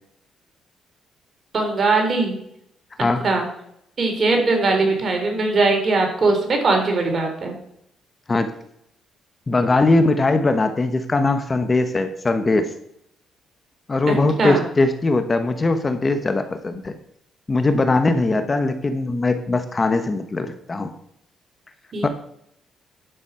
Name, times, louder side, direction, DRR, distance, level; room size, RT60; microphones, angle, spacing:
voice 1, 1.5-2.4 3.0-3.5 4.0-7.5 14.1-14.6 21.9-22.1, right 3 dB, 45° right, 3 dB, 3.3 m, -20 dB
voice 2, 9.5-12.7 13.9-16.9 17.5-20.9 22.0-22.1, left 2 dB, 30° left, 8 dB, 1.0 m, -20 dB
11.5 x 6.0 x 5.6 m, 0.73 s
cardioid pair, 90°, 0 cm